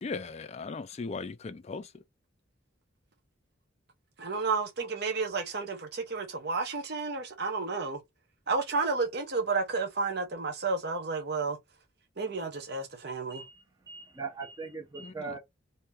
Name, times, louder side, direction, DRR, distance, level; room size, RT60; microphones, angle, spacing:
voice 1, 0.0-1.9 15.0-15.4, left 4 dB, 30° left, 0.3 m, -38 dB
voice 2, 4.2-8.0 8.5-11.6 12.2-13.4, right 4 dB, 50° right, 0.9 m, -31 dB
voice 3, 13.3-15.4, right 4 dB, 20° right, 0.7 m, -40 dB
2.8 x 2.7 x 3.6 m
head